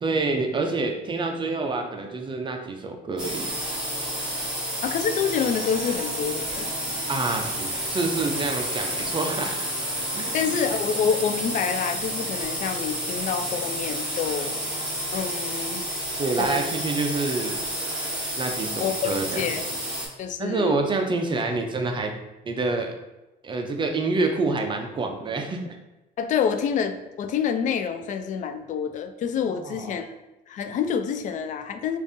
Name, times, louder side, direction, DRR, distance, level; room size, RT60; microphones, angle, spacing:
voice 1, 0.0-3.5 7.1-9.7 10.1-10.5 16.2-17.6 18.4-19.5 20.4-22.1 22.5-22.9 23.4-25.8 29.5-29.9, right 3 dB, 30° right, 4 dB, 0.4 m, -27 dB
sound 1, 3.2-20.1, right 1 dB, 5° right, 1.2 m, -30 dB
voice 2, 4.1-4.5 4.8-6.7 10.3-14.6 15.1-15.9 16.4-16.7 18.8-19.6 20.2-20.8 26.2-30.1 30.5-32.0, left 7 dB, 50° left, 8 dB, 0.4 m, -27 dB
5.1 x 2.4 x 2.6 m, 1.0 s
cardioid pair, 110°, 17 cm